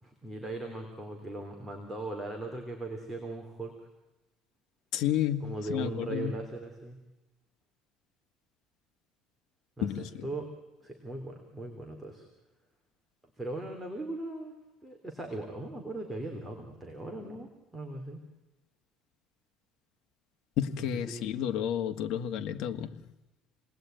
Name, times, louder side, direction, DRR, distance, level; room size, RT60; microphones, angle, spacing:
voice 1, 0.0-3.7 5.4-7.0 9.8-10.5 10.8-12.3 13.4-14.5 14.8-18.2 21.1-21.3, right 2 dB, 10° right, 3.1 m, -39 dB
voice 2, 4.9-6.3 9.8-10.3 20.6-23.1, left 10 dB, 60° left, 1.6 m, -31 dB
28.5 x 19.5 x 9.1 m
cardioid pair, 145°, 0 cm